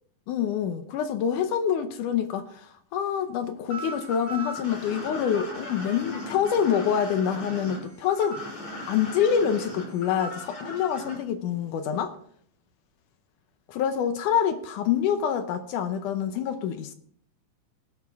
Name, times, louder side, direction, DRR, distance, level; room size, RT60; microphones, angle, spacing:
voice 1, 0.3-8.4 8.9-12.1 13.7-16.9, left 8 dB, 75° left, 2.2 m, -26 dB
sound 1, 3.7-11.1, equal, 50° left, 7.7 m, -37 dB
17.0 x 12.0 x 3.5 m
omnidirectional pair, 3.9 m